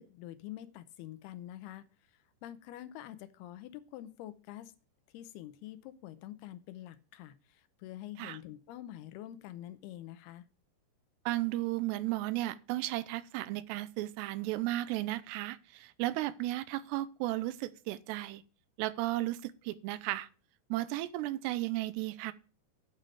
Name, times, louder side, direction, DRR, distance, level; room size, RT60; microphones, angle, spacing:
voice 1, 0.0-1.9 2.4-4.7 5.1-10.5, left 13 dB, 80° left, 2.5 m, -46 dB
voice 2, 11.3-18.4 18.8-20.3 20.7-22.3, right 16 dB, 85° right, 2.8 m, -34 dB
9.1 x 5.4 x 7.6 m
omnidirectional pair, 4.8 m